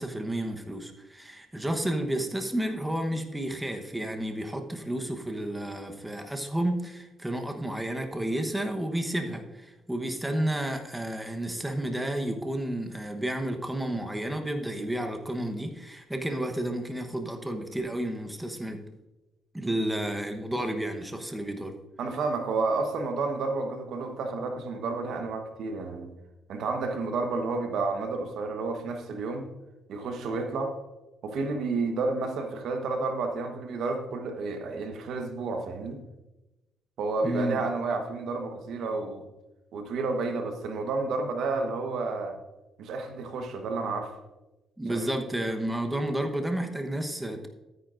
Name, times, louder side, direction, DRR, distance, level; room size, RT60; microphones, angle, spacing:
voice 1, 0.0-18.8 19.5-21.8 37.2-37.6 44.8-47.5, right 1 dB, 10° right, 5 dB, 1.0 m, -31 dB
voice 2, 22.0-26.1 26.5-29.5 29.9-30.7 31.2-36.0 37.0-39.3 39.7-42.4 42.8-44.1 44.9-45.1, right 3 dB, 75° right, 5 dB, 1.1 m, -31 dB
13.0 x 9.3 x 2.5 m, 1.0 s
cardioid pair, 90°, 0 cm